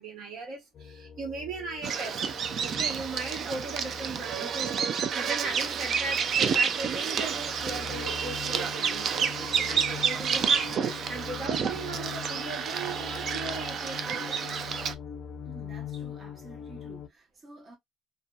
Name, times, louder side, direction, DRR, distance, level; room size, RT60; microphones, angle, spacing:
voice 1, 0.0-2.2 2.5-9.3 9.6-14.6, right 3 dB, 75° right, 1.2 m, -38 dB
sound 1, 0.7-17.1, left 8 dB, 55° left, 0.4 m, -43 dB
Bird vocalization bird call bird song, 1.8-14.9, right 7 dB, 55° right, 0.3 m, -29 dB
voice 2, 15.4-17.8, right 3 dB, 35° right, 0.7 m, -50 dB
2.6 x 2.2 x 2.2 m
cardioid pair, 95°, 0 cm